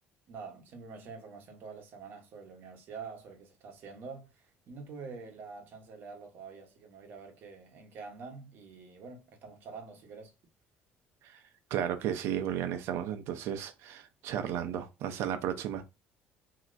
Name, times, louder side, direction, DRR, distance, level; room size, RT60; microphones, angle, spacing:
voice 1, 0.3-10.3, right 5 dB, 50° right, 1.0 m, -46 dB
voice 2, 11.7-15.8, right 9 dB, 70° right, 0.5 m, -34 dB
3.2 x 2.8 x 2.4 m
cardioid pair, 160°, 5 cm